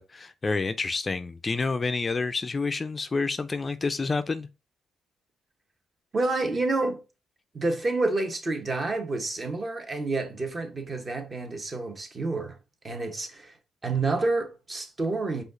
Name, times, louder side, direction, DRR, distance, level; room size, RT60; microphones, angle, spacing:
voice 1, 0.0-4.5, left 4 dB, 30° left, 0.3 m, -28 dB
voice 2, 6.1-7.0 7.5-12.6 12.8-13.6 13.8-15.4, right 3 dB, 35° right, 0.9 m, -28 dB
5.0 x 2.4 x 3.7 m
cardioid pair, 90°, 0 cm